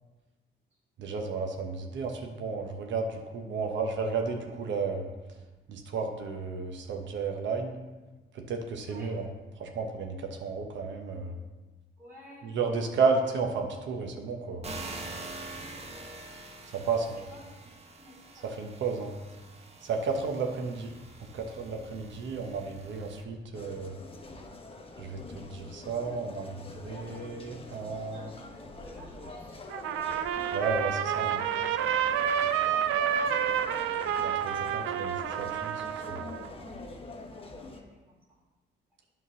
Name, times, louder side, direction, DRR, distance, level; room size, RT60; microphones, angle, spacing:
voice 1, 1.0-5.1 5.7-7.8 8.3-9.3 9.6-11.3 12.4-14.7 16.7-17.2 18.4-19.1 19.8-20.9 21.3-23.9 25.0-28.3 30.5-31.4 34.2-36.2, right 4 dB, 70° right, 3 dB, 1.0 m, -32 dB
voice 2, 12.0-12.7 15.5-16.3 17.1-17.7 18.0-18.6 28.1-29.6 32.5-34.0 36.4-36.8 37.3-38.2, right 1 dB, 10° right, -7 dB, 2.4 m, -53 dB
sound 1, 14.6-23.2, right 2 dB, 30° right, 1.1 m, -45 dB
sound 2, 23.5-37.8, left 2 dB, 30° left, 1.0 m, -45 dB
Trumpet, 29.7-36.5, right 9 dB, 90° right, 0.5 m, -29 dB
8.5 x 3.8 x 6.3 m, 1.2 s
cardioid pair, 90°, 20 cm